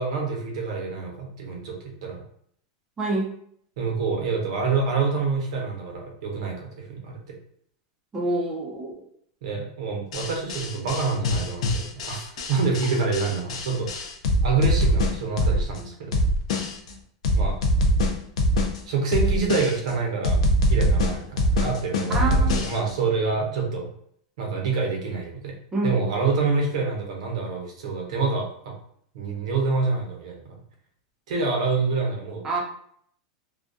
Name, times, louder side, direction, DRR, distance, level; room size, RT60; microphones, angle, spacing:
voice 1, 0.0-1.8 2.0-2.2 3.8-7.3 9.4-14.1 14.4-16.2 17.4-17.6 18.9-23.9 24.4-25.5 25.8-28.7 29.1-30.5 31.3-32.5, right 4 dB, 80° right, 0 dB, 0.7 m, -27 dB
voice 2, 3.0-3.3 8.1-8.9 22.1-22.6 25.7-26.0 32.4-32.6, right 2 dB, 15° right, -2 dB, 0.5 m, -26 dB
sound 1, 10.1-15.8 16.1-16.9 17.2-18.8 19.1-19.9 20.2-22.9, equal, 85° left, 0.4 m, -23 dB
2.2 x 2.2 x 2.5 m, 0.65 s
supercardioid pair, 140°, 3 cm